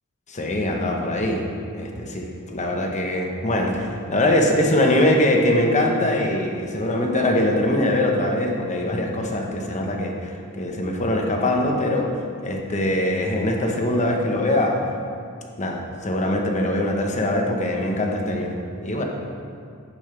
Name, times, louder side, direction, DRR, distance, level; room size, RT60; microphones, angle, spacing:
voice 1, 0.3-1.4 1.8-12.1 12.4-14.8 15.6-18.6 18.8-19.0, left 1 dB, 35° left, 1 dB, 1.1 m, -22 dB
10.5 x 9.6 x 3.4 m, 2.3 s
head